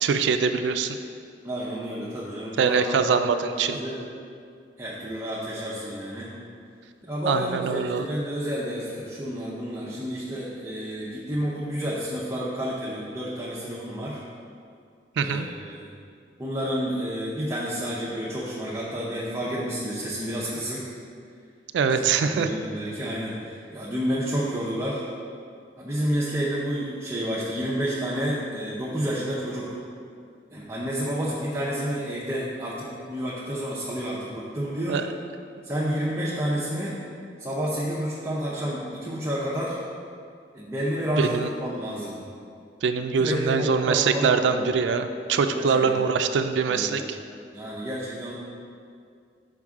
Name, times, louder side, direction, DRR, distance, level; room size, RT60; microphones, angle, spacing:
voice 1, 0.0-1.0 2.6-3.8 7.3-8.1 15.2-15.5 21.7-22.5 34.9-35.1 41.2-41.5 42.8-47.2, right 5 dB, 90° right, 8 dB, 0.3 m, -23 dB
voice 2, 1.4-4.0 4.8-6.3 7.0-14.2 15.2-15.9 16.4-20.8 21.9-25.0 25.8-29.8 30.5-35.0 35.6-37.0 37.4-39.8 40.5-42.2 43.2-44.7 45.5-46.0 46.7-47.0 47.5-48.3, equal, 15° right, -7 dB, 0.7 m, -30 dB
6.1 x 5.2 x 3.6 m, 2.3 s
head